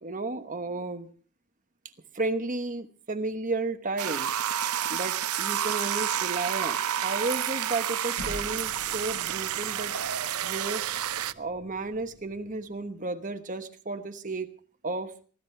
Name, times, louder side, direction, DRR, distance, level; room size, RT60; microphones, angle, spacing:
voice 1, 0.0-1.1 2.1-4.4 4.9-9.9 10.4-10.8 11.4-14.5 14.8-15.1, right 3 dB, 35° right, 7 dB, 1.1 m, -33 dB
sound 1, 4.0-11.3, right 10 dB, 90° right, 0.7 m, -30 dB
sound 2, 8.2-12.9, equal, 65° left, 5.0 m, -46 dB
24.0 x 16.5 x 3.4 m, 0.42 s
head